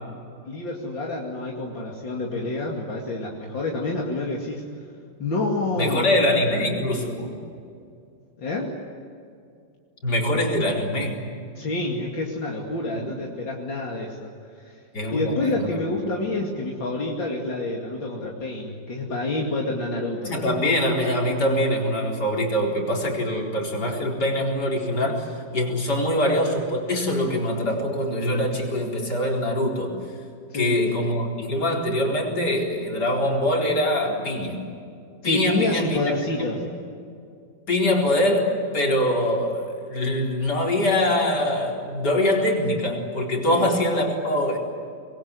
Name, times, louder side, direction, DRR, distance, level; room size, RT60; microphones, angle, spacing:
voice 1, 0.4-4.7 5.2-6.1 6.5-6.6 8.4-8.8 11.5-14.3 14.6-14.7 15.1-20.4 30.5-30.8 35.2-36.6 43.5-43.7, left 2 dB, 80° left, -2 dB, 3.3 m, -28 dB
voice 2, 5.8-7.3 10.0-11.2 13.0-13.1 14.9-15.9 20.2-29.9 30.5-34.6 35.2-36.6 37.7-44.6, left 1 dB, 60° left, 0 dB, 4.8 m, -24 dB
26.0 x 21.5 x 9.7 m, 2.4 s
omnidirectional pair, 2.0 m